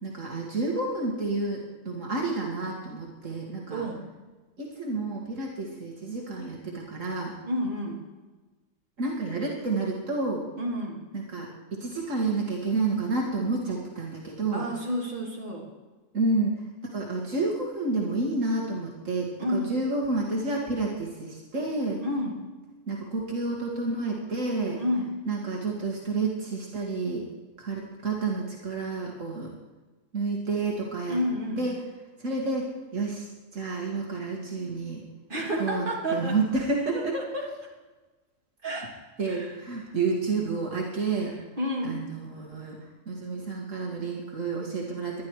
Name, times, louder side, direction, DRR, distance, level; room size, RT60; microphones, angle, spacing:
voice 1, 0.0-3.8 4.6-7.3 9.0-10.4 11.1-14.7 16.1-16.6 16.9-22.0 22.9-24.8 25.3-27.3 27.6-29.5 30.1-31.2 31.6-31.7 32.2-35.0 35.6-37.2 39.2-41.3 41.8-42.8 43.1-45.2, right 3 dB, 65° right, -2 dB, 2.4 m, -30 dB
voice 2, 3.7-4.0 7.4-8.0 10.6-11.0 14.5-15.7 19.4-19.7 22.0-22.4 24.8-25.1 31.1-31.7 35.3-36.4 36.9-37.5 38.6-39.0 39.3-39.5 39.9-40.0 41.3-42.1, equal, 40° right, -3 dB, 3.2 m, -30 dB
20.5 x 12.0 x 4.8 m, 1.2 s
omnidirectional pair, 1.4 m